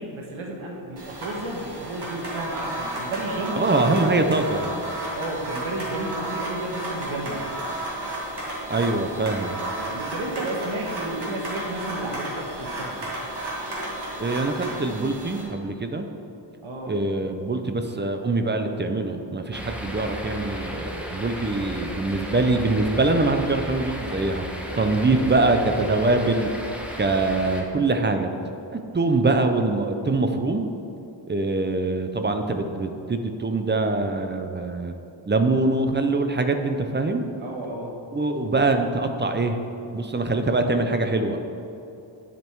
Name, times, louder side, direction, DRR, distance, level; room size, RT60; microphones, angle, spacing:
voice 1, 0.0-4.4 5.1-7.4 9.8-13.0 16.6-17.0 24.6-26.0 37.4-37.9, right 1 dB, 90° right, -1 dB, 1.3 m, -32 dB
sound 1, 1.0-15.4, right 1 dB, 55° right, 2.2 m, -33 dB
voice 2, 3.6-4.7 8.7-9.6 14.2-16.1 16.9-24.4 24.8-26.5 27.0-28.3 28.7-30.7 31.3-34.9 35.3-37.2 38.1-39.6 39.9-41.4, right 2 dB, 25° right, 6 dB, 0.5 m, -23 dB
sound 2, 19.5-27.6, equal, 5° right, 0.9 m, -35 dB
10.5 x 5.2 x 4.6 m, 2.8 s
wide cardioid pair, 145°, 47 cm